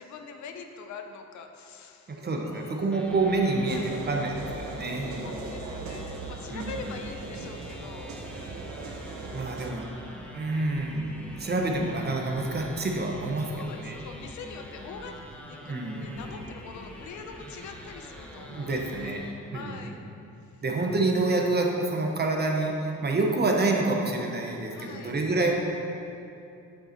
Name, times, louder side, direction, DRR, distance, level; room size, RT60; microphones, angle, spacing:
voice 1, 0.0-3.0 3.7-3.9 5.2-8.6 13.5-15.2 15.5-19.2 19.5-20.1 20.4-20.6 24.7-25.2, left 5 dB, 70° left, 5 dB, 0.7 m, -44 dB
voice 2, 2.1-5.3 6.5-6.8 9.3-9.9 10.3-14.0 15.7-16.1 18.5-19.2 19.5-19.8 20.6-25.5, right 2 dB, 35° right, 1 dB, 1.0 m, -27 dB
sound 1, 2.9-19.3, equal, 5° left, 0.9 m, -45 dB
sound 2, 3.7-9.7, right 3 dB, 70° right, 0.9 m, -39 dB
7.2 x 5.6 x 4.4 m, 2.7 s
cardioid pair, 90°, 30 cm